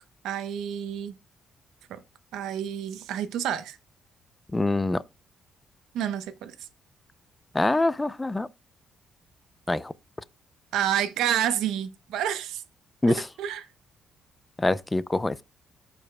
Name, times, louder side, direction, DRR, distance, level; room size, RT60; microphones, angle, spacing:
voice 1, 0.2-1.2 1.9-2.0 2.3-3.8 5.9-6.5 10.7-12.6 13.1-13.7, right 10 dB, 85° right, 0.7 m, -29 dB
voice 2, 4.5-5.0 7.5-8.5 9.7-9.9 13.0-13.3 14.6-15.4, left 2 dB, 15° left, 0.4 m, -24 dB
14.0 x 4.9 x 2.2 m
cardioid pair, 90°, 0 cm